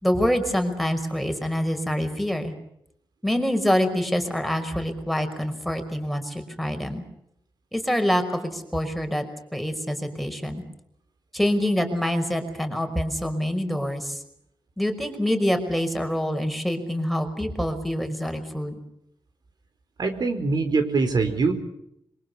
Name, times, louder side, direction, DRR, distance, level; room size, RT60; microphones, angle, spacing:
voice 1, 0.0-2.5 3.2-7.0 7.7-9.2 9.5-10.6 11.3-14.2 14.8-18.8, equal, ahead, 6 dB, 5.4 m, -26 dB
voice 2, 20.0-21.5, right 4 dB, 55° right, 7 dB, 4.2 m, -23 dB
26.5 x 24.0 x 7.2 m, 0.77 s
cardioid pair, 95°, 8 cm